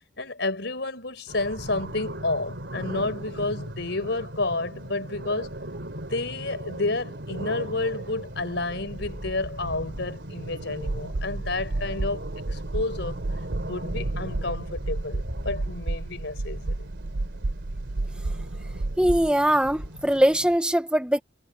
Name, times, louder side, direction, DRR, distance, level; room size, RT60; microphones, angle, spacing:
voice 1, 0.2-5.5 6.1-13.2 13.6-16.9, left 2 dB, 65° left, 4.9 m, -30 dB
sound 1, 1.3-20.6, right 1 dB, 65° right, 3.9 m, -38 dB
sound 2, 10.8-19.3, right 2 dB, 85° right, 0.8 m, -31 dB
voice 2, 19.0-21.2, right 1 dB, 5° right, 0.9 m, -21 dB
head